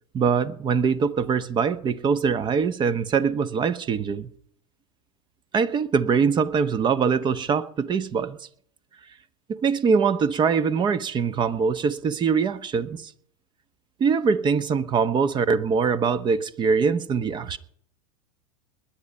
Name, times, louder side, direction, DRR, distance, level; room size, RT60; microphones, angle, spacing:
voice 1, 0.1-4.3 5.5-8.5 9.5-13.1 14.0-17.6, right 5 dB, 25° right, 1.0 m, -23 dB
20.0 x 10.5 x 5.5 m
figure-of-eight pair, 90°, 18 cm